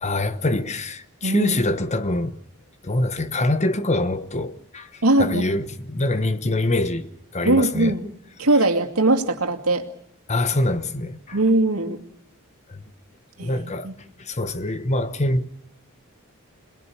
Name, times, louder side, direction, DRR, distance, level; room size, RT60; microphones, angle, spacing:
voice 1, 0.0-2.4 2.8-7.9 10.3-11.4 12.7-12.8 13.4-13.9 14.2-15.5, left 2 dB, 30° left, 1.1 m, -25 dB
voice 2, 1.2-1.6 5.0-5.4 7.4-8.1 8.4-9.8 11.3-12.0 13.4-13.9, right 2 dB, 85° right, 2.4 m, -20 dB
27.0 x 19.0 x 8.6 m
head